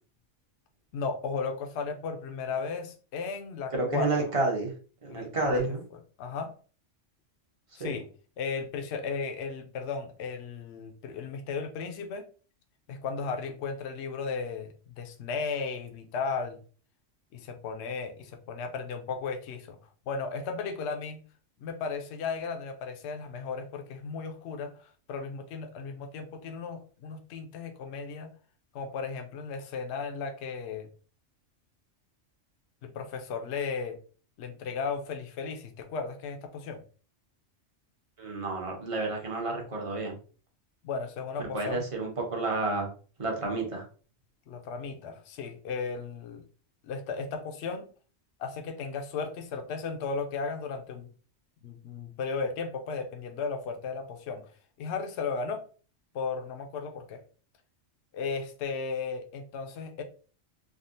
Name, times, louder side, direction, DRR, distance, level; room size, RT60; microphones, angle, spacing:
voice 1, 0.9-4.3 5.1-5.7 6.2-6.5 7.8-8.1 8.4-12.3 12.9-16.6 17.3-19.8 20.1-21.2 21.6-28.3 28.7-30.9 32.8-34.0 34.4-36.8 40.8-41.8 44.5-46.4 46.8-47.9 48.4-51.1 51.6-54.4 54.8-55.6 56.1-57.2 58.1-60.0, left 5 dB, 70° left, 5 dB, 0.8 m, -35 dB
voice 2, 3.7-4.7 5.0-5.8 7.8-7.9 38.2-40.2 41.5-42.9 43.2-43.8, right 2 dB, 30° right, 0 dB, 0.8 m, -30 dB
3.5 x 2.3 x 2.5 m, 0.38 s
omnidirectional pair, 1.3 m